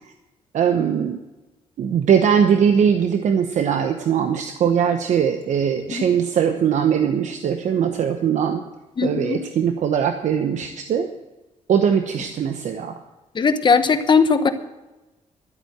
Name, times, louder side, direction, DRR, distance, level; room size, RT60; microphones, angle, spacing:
voice 1, 0.5-1.2 1.8-8.6 9.0-11.1 11.7-13.0, right 8 dB, 70° right, 7 dB, 0.9 m, -20 dB
voice 2, 9.0-9.4 13.3-14.5, left 5 dB, 35° left, 10 dB, 1.1 m, -18 dB
12.5 x 8.5 x 7.9 m, 1.1 s
cardioid pair, 105°, 13 cm